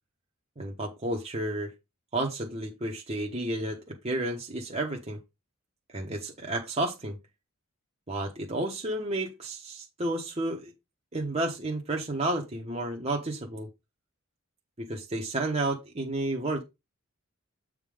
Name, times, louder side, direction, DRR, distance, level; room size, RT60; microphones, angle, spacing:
voice 1, 0.6-1.7 2.1-5.2 5.9-7.2 8.1-10.7 11.1-13.7 14.8-16.6, right 2 dB, 30° right, 1.1 m, -31 dB
8.1 x 3.7 x 5.0 m
head